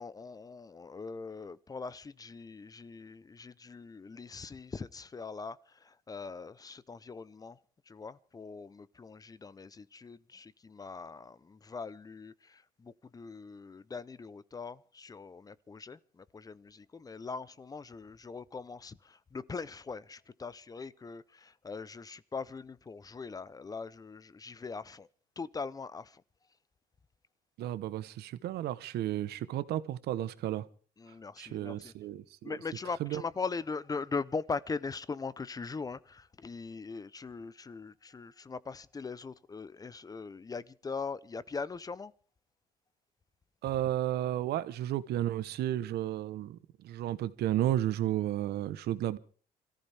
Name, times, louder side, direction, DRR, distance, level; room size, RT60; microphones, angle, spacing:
voice 1, 0.0-7.6 7.9-25.1 25.4-26.2 31.0-31.9 32.4-42.1, left 4 dB, 20° left, 0.7 m, -41 dB
voice 2, 27.6-30.6 31.4-32.6 33.0-33.2 43.6-46.6 46.8-49.2, right 13 dB, 75° right, 1.1 m, -33 dB
26.0 x 14.5 x 3.5 m
cardioid pair, 110°, 17 cm